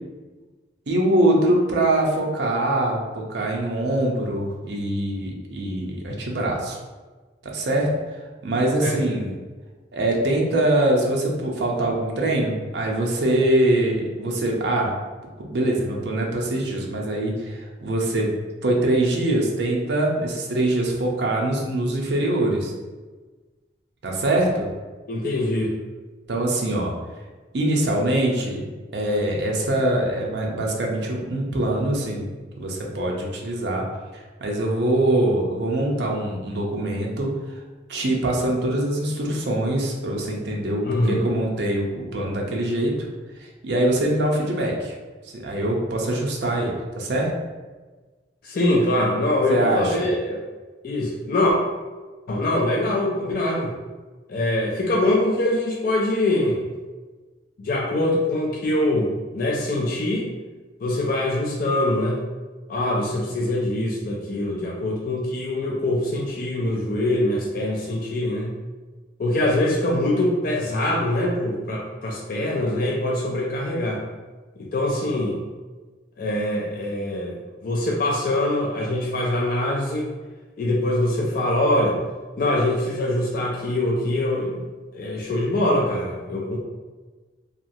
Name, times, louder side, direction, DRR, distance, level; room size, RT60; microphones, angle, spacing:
voice 1, 0.9-6.8 7.4-7.9 8.4-9.3 9.9-14.9 15.4-18.3 18.6-22.7 24.0-24.7 26.3-26.9 27.5-32.3 32.6-33.8 34.1-37.3 37.9-42.9 43.6-44.9 45.3-47.3 49.5-50.1, right 1 dB, 65° right, -1 dB, 0.5 m, -23 dB
voice 2, 25.1-25.7 40.8-41.2 48.4-50.4 50.8-51.6 52.3-53.7 54.3-56.6 57.6-60.3 60.8-62.2 62.7-68.5 69.2-74.0 74.6-75.4 76.2-77.4 77.6-80.1 80.6-82.0 82.4-84.7 84.9-86.6, left 1 dB, 50° left, -2 dB, 0.3 m, -23 dB
2.9 x 2.4 x 2.5 m, 1.3 s
head